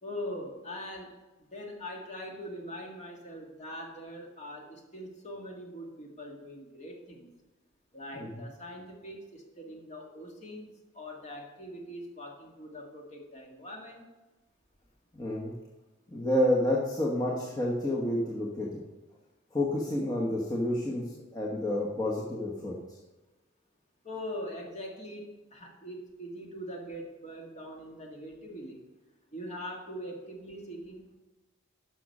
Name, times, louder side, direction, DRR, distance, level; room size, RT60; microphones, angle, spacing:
voice 1, 0.0-7.3 7.9-14.0 24.0-28.9 29.3-31.1, equal, 35° left, 0 dB, 1.9 m, -42 dB
voice 2, 15.1-15.5 16.1-18.8 19.5-22.8, left 1 dB, 20° left, -4 dB, 1.2 m, -29 dB
11.5 x 6.2 x 5.4 m, 1.1 s
head